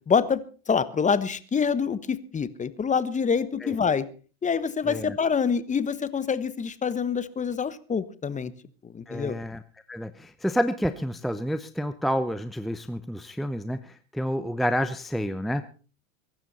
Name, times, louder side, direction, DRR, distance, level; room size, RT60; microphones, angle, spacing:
voice 1, 0.1-4.1 4.4-8.5 8.9-9.4, left 6 dB, 20° left, 15 dB, 1.2 m, -26 dB
voice 2, 4.9-5.2 9.1-9.6 9.9-15.6, equal, ahead, 10 dB, 0.8 m, -29 dB
22.5 x 12.0 x 4.2 m, 0.38 s
hypercardioid pair, 105°, 40 cm